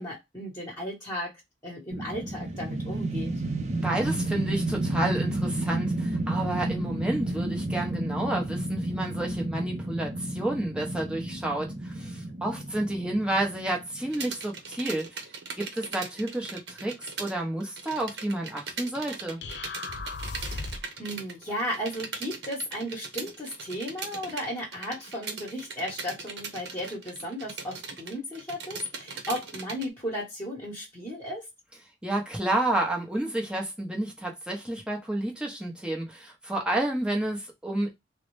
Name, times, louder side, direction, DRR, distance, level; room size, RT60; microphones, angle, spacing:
voice 1, 0.0-1.3 1.6-3.3 21.0-31.4, equal, 20° left, 1.2 m, -35 dB
sound 1, 1.9-14.1, right 1 dB, 40° right, 0.6 m, -31 dB
voice 2, 3.8-15.1 15.6-19.4 32.0-37.9, right 1 dB, 5° right, 0.9 m, -30 dB
sound 2, 14.1-17.3 17.6-29.9, right 4 dB, 75° right, 0.8 m, -40 dB
sound 3, 19.4-21.0, left 3 dB, 80° left, 0.6 m, -36 dB
3.8 x 2.1 x 3.1 m
head